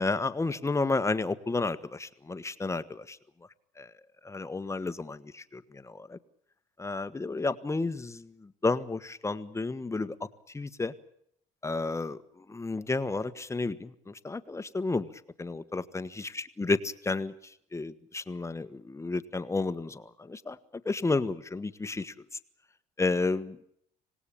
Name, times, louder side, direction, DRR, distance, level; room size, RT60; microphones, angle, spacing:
voice 1, 0.0-3.2 3.8-3.9 4.2-6.2 6.8-10.3 10.5-10.9 11.6-15.1 15.4-17.3 17.7-20.6 20.8-22.1 23.0-23.6, left 3 dB, 15° left, 11 dB, 1.5 m, -31 dB
26.0 x 18.5 x 8.6 m, 0.70 s
cardioid pair, 110°, 17 cm